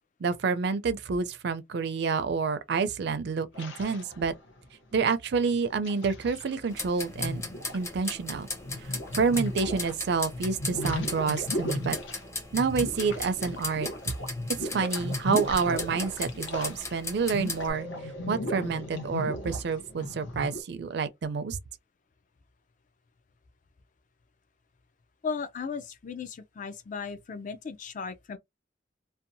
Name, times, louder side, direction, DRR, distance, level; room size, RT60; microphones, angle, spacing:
voice 1, 0.2-4.3 4.9-7.4 7.7-8.5 8.8-12.0 12.5-13.9 14.6-17.9 18.3-21.6, right 5 dB, 60° right, 0.4 m, -28 dB
sound 1, 3.5-4.6 5.4-6.7 7.1-10.0 10.3-16.9 17.2-20.6, left 1 dB, 75° left, 0.8 m, -36 dB
sound 2, 6.7-17.7, left 2 dB, 15° left, 0.7 m, -37 dB
voice 2, 25.2-28.4, left 5 dB, 40° left, 0.4 m, -36 dB
2.7 x 2.1 x 2.6 m
head